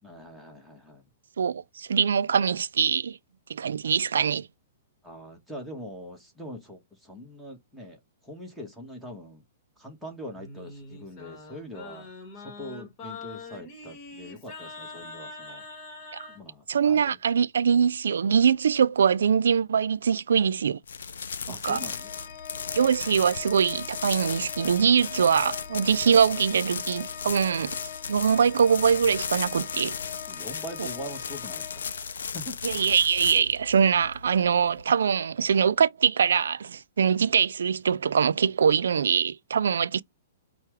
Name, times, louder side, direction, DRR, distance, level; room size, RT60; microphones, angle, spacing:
voice 1, 0.0-1.0 5.0-8.0 8.2-9.4 9.8-12.1 12.4-15.6 16.3-17.2 21.5-22.1 30.3-31.8 32.3-32.5, equal, ahead, 1.4 m, -42 dB
voice 2, 1.4-3.2 3.5-4.5 16.1-16.3 16.7-20.8 21.5-21.8 22.8-27.8 28.1-30.0 30.8-30.9 32.6-40.0, right 7 dB, 85° right, 0.3 m, -23 dB
Singing, 10.3-16.4, left 3 dB, 30° left, 1.6 m, -43 dB
sound 1, 20.8-34.8, left 6 dB, 90° left, 0.5 m, -36 dB
Organ, 21.6-32.5, left 10 dB, 50° left, 0.8 m, -43 dB
5.6 x 2.4 x 3.2 m
hypercardioid pair, 145°, 0 cm